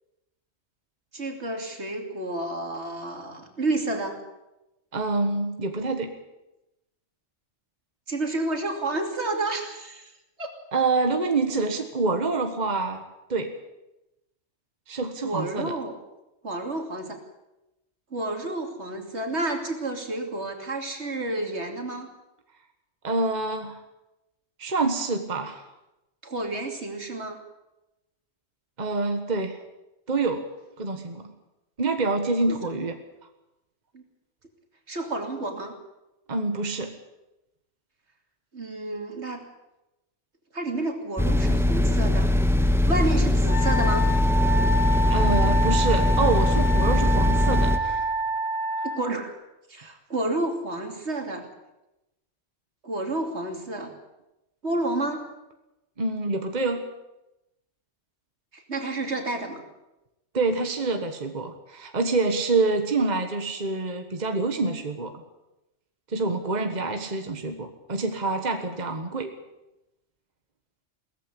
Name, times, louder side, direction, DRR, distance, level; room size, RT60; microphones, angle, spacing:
voice 1, 1.1-4.2 8.1-10.1 10.4-10.5 15.2-16.0 16.4-17.2 18.1-22.1 26.2-27.4 32.5-32.8 33.9-34.0 34.9-35.7 38.5-39.4 40.5-42.3 42.9-44.1 48.8-49.3 49.7-51.5 52.8-53.9 54.6-55.3 58.5-59.6, right 2 dB, 65° right, 4 dB, 3.0 m, -30 dB
voice 2, 4.9-6.1 10.7-13.0 13.3-13.5 14.9-15.8 23.0-23.8 24.6-25.6 28.8-29.6 30.1-30.4 30.8-31.3 31.8-32.9 36.3-36.9 45.1-48.1 56.0-56.8 60.3-65.1 66.1-69.3, right 3 dB, 35° right, 6 dB, 1.5 m, -26 dB
sound 1, 41.2-47.8, left 1 dB, ahead, 1.3 m, -21 dB
Wind instrument woodwind instrument, 43.5-49.0, right 1 dB, 60° left, 4.5 m, -27 dB
18.5 x 14.5 x 9.9 m, 0.95 s
omnidirectional pair, 1.2 m